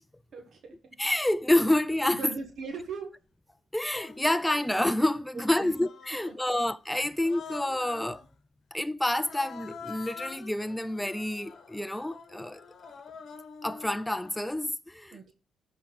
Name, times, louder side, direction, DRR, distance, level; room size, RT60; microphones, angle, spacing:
voice 1, 0.3-0.8 2.1-3.1 5.3-5.7 6.3-6.6 15.1-15.3, right 4 dB, 55° right, 1.5 m, -39 dB
voice 2, 1.0-2.3 3.7-8.2 8.7-12.6 13.6-15.2, left 1 dB, 5° left, 0.4 m, -28 dB
Human voice, 2.7-2.9 3.8-4.7 5.3-6.4 7.1-8.3 9.2-14.4, left 5 dB, 60° left, 1.1 m, -46 dB
12.5 x 4.4 x 3.9 m
cardioid pair, 90°, 0 cm